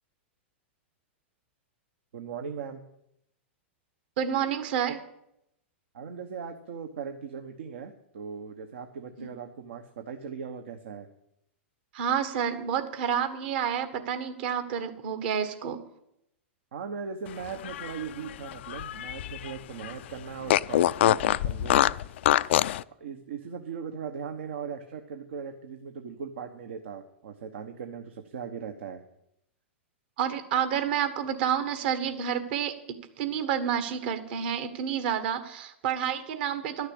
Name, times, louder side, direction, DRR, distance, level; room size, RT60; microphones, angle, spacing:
voice 1, 2.1-2.8 5.9-11.1 16.7-21.9 23.0-29.0, right 6 dB, 75° right, 6 dB, 1.0 m, -39 dB
voice 2, 4.2-5.0 9.2-9.3 11.9-15.8 30.2-36.9, right 8 dB, 60° right, 9 dB, 1.6 m, -29 dB
Fart, 17.5-19.5 19.8-19.9 20.5-22.8, left 13 dB, 65° left, 0.3 m, -24 dB
12.0 x 6.5 x 8.6 m, 0.79 s
hypercardioid pair, 110°, 7 cm